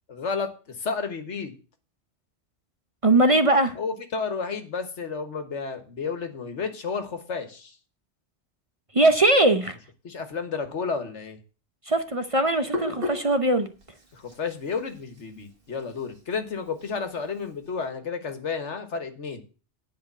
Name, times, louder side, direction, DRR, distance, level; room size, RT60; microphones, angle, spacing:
voice 1, 0.1-1.5 3.8-7.8 10.0-11.4 14.1-19.4, left 5 dB, 75° left, 8 dB, 1.7 m, -31 dB
voice 2, 3.0-3.7 8.9-9.8 11.9-13.7, right 2 dB, 35° right, 9 dB, 0.7 m, -20 dB
Hands, 11.9-17.9, left 2 dB, 50° right, 2.1 m, -38 dB
10.0 x 5.0 x 8.1 m, 0.35 s
omnidirectional pair, 1.2 m